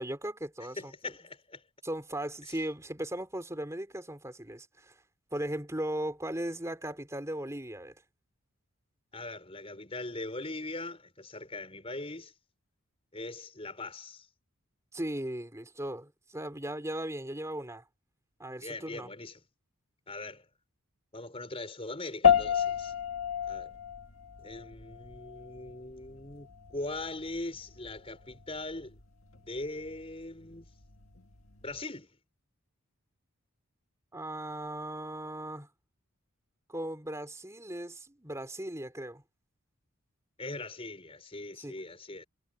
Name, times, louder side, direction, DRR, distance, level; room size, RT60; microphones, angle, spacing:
voice 1, 0.0-1.1 1.8-4.9 5.3-7.9 14.9-17.8 18.4-19.1 34.1-35.7 36.7-39.2 41.6-41.8, right 1 dB, 15° right, 3.5 m, -37 dB
voice 2, 0.8-1.6 9.1-12.3 13.1-14.3 18.6-19.4 20.1-20.5 21.1-22.9 23.5-23.8 24.4-29.0 29.3-30.7 31.6-32.1 40.4-42.2, left 2 dB, 25° left, 5.6 m, -41 dB
sound 1, 22.2-31.8, left 8 dB, 70° left, 2.0 m, -32 dB
head